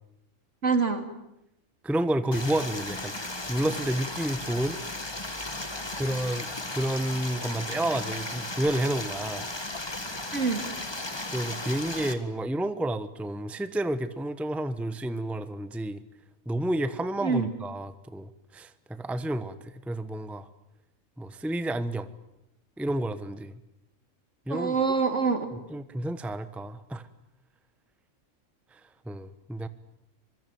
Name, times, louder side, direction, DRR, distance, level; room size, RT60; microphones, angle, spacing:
voice 1, 0.6-1.0 10.3-10.7 17.2-17.5 24.5-25.5, right 5 dB, 65° right, 7 dB, 3.2 m, -25 dB
voice 2, 1.8-4.8 6.0-6.5 6.7-9.4 11.3-16.0 16.5-20.5 21.2-22.1 22.8-23.5 24.5-24.8 25.7-27.0 28.7-28.8 29.1-29.7, right 1 dB, ahead, 12 dB, 1.0 m, -30 dB
Stream, 2.3-12.1, left 2 dB, 20° left, 1.9 m, -35 dB
25.0 x 23.5 x 9.3 m, 0.83 s
omnidirectional pair, 1.4 m